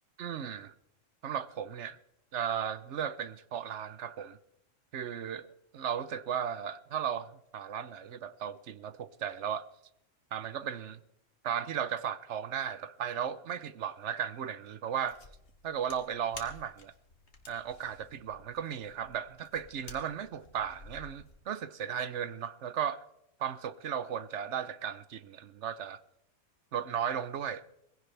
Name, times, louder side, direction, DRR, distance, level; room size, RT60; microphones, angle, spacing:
voice 1, 0.2-0.7 1.2-2.0 2.3-4.4 4.9-5.5 5.7-9.6 10.3-11.0 11.4-15.2 15.6-16.9 17.5-23.0 23.4-26.0 26.7-27.6, right 8 dB, 70° right, 1.1 m, -35 dB
sound 1, 15.0-21.4, left 3 dB, 60° left, 2.0 m, -53 dB
21.5 x 16.0 x 3.4 m
omnidirectional pair, 1.3 m